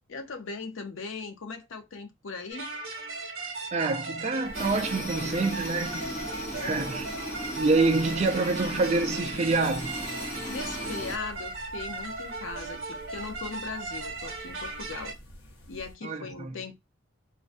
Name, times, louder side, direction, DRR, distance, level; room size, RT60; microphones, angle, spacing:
voice 1, 0.1-2.7 6.5-6.9 10.2-15.1 15.7-16.8, left 4 dB, 75° left, 0.6 m, -39 dB
sound 1, 2.5-15.1, right 3 dB, 80° right, 0.8 m, -37 dB
voice 2, 3.7-7.1 7.5-10.0 16.0-16.5, right 3 dB, 35° right, 0.4 m, -27 dB
sound 2, 4.4-16.0, equal, 90° left, 0.9 m, -48 dB
sound 3, 4.5-11.2, equal, 35° left, 0.8 m, -37 dB
2.5 x 2.2 x 2.5 m
head